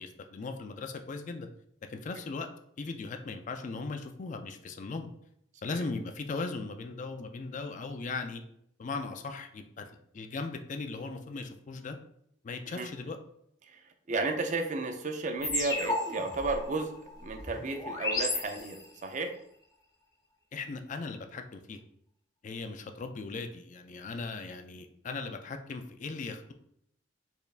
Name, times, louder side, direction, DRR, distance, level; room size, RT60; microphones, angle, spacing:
voice 1, 0.0-1.5 1.9-2.5 2.8-5.1 5.6-8.4 8.8-9.9 10.1-12.0 12.4-13.2 20.5-21.8 22.4-26.5, left 3 dB, 40° left, 6 dB, 0.4 m, -38 dB
voice 2, 14.1-16.9 17.2-19.4, right 3 dB, 40° right, 5 dB, 0.5 m, -33 dB
sound 1, 15.4-19.1, left 2 dB, 20° left, 0.8 m, -34 dB
4.4 x 3.4 x 2.4 m, 0.72 s
head